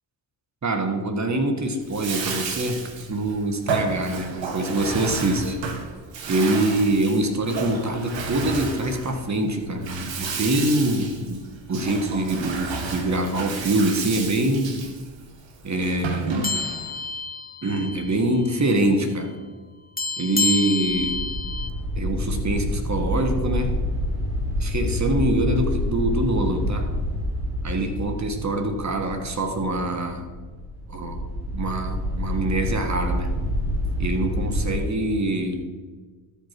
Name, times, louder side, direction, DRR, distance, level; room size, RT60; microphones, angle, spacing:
voice 1, 0.6-2.8 3.1-5.6 6.3-11.4 11.7-14.8 15.6-16.5 17.6-19.3 20.2-21.2 22.0-23.8 24.6-26.9 27.6-30.3 30.9-31.2 31.5-33.3 34.0-35.6, right 1 dB, 35° right, 6 dB, 1.8 m, -24 dB
Bathtub (filling or washing), 1.8-17.0, right 4 dB, 60° right, 1.7 m, -32 dB
sound 1, 16.4-18.1 18.4-18.6 20.0-21.7, left 3 dB, 20° left, 0.9 m, -28 dB
sound 2, 20.8-34.8, left 1 dB, 85° right, 2.4 m, -27 dB
12.5 x 5.4 x 6.1 m, 1.4 s
supercardioid pair, 60°, 50 cm